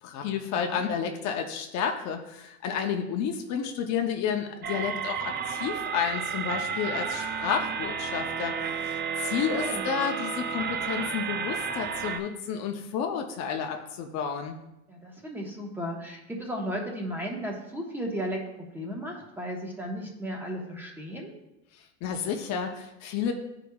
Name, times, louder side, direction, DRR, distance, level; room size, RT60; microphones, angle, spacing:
voice 1, 0.0-14.6 21.7-23.3, left 7 dB, 55° left, 4 dB, 0.8 m, -31 dB
voice 2, 0.5-0.9 9.5-9.8 14.9-18.4 18.7-21.3, equal, 5° right, -1 dB, 1.2 m, -35 dB
sound 1, 4.6-12.2, right 6 dB, 30° right, 0.6 m, -32 dB
13.0 x 4.9 x 2.3 m, 0.92 s
supercardioid pair, 130°, 34 cm